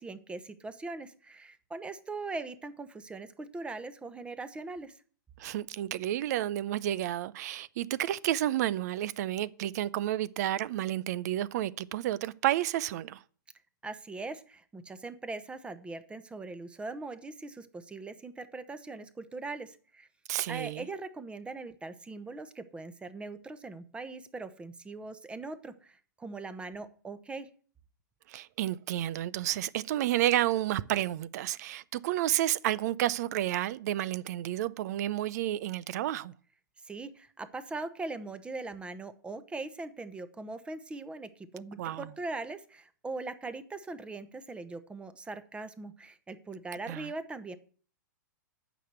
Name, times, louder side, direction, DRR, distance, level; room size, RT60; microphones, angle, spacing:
voice 1, 0.0-5.0 13.8-20.1 20.5-27.5 36.8-47.6, right 3 dB, 10° right, 0.9 m, -41 dB
voice 2, 5.4-13.2 20.3-20.9 28.3-36.3 41.8-42.1 46.9-47.1, right 13 dB, 55° right, 0.6 m, -31 dB
9.1 x 6.1 x 8.1 m
hypercardioid pair, 130°, 11 cm